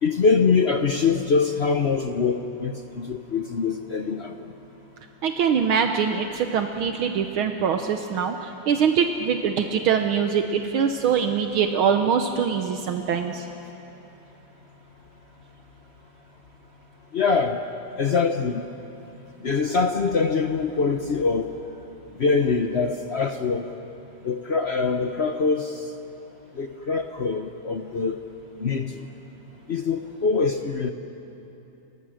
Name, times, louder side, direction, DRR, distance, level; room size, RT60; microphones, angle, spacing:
voice 1, 0.0-4.3 17.1-17.6 18.0-18.6 19.4-21.5 22.2-23.7 24.2-25.9 26.5-28.2 28.6-29.0 29.7-30.9, left 4 dB, 70° left, 6 dB, 0.6 m, -23 dB
voice 2, 5.2-13.4, right 7 dB, 75° right, 5 dB, 1.7 m, -23 dB
29.5 x 24.0 x 6.4 m, 2.9 s
omnidirectional pair, 2.4 m